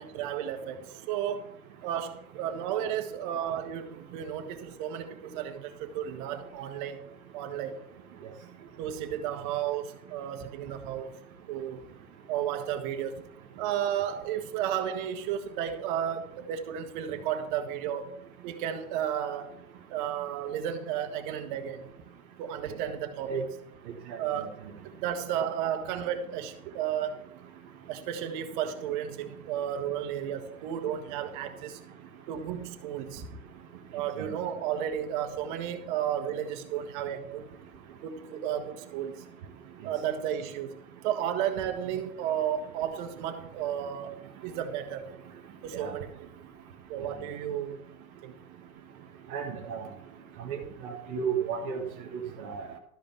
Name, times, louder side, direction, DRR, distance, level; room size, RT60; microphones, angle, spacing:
voice 1, 0.0-1.5 1.8-7.0 7.3-7.8 8.8-11.1 11.5-11.8 12.3-13.2 13.6-18.1 18.4-19.5 19.9-21.9 22.4-23.5 24.2-24.5 24.9-27.2 27.9-31.8 32.3-33.4 33.9-37.4 38.0-39.2 39.8-40.8 41.0-44.1 44.4-45.1 45.6-46.3 46.9-47.8 48.2-48.3, right 9 dB, 35° right, 1.4 m, -33 dB
voice 2, 49.3-49.9 50.4-51.8 52.1-52.6, right 6 dB, 10° right, 0.4 m, -33 dB
13.0 x 5.0 x 7.1 m
hypercardioid pair, 150°, 43 cm